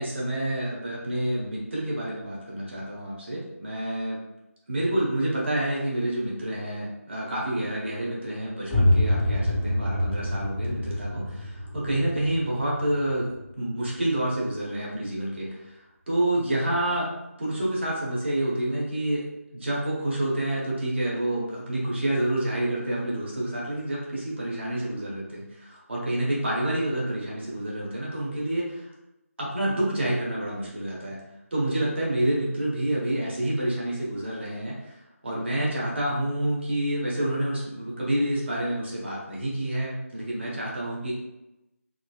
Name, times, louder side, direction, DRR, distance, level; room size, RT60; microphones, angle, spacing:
voice 1, 0.0-4.2 4.7-13.3 13.6-15.6 16.1-17.1 17.4-19.3 19.5-28.9 29.4-31.2 31.5-34.9 35.2-41.1, right 1 dB, 50° right, -5 dB, 1.1 m, -28 dB
sound 1, 8.7-14.3, left 1 dB, 5° left, 0.8 m, -27 dB
3.8 x 2.1 x 2.3 m, 0.94 s
figure-of-eight pair, 165°, 8 cm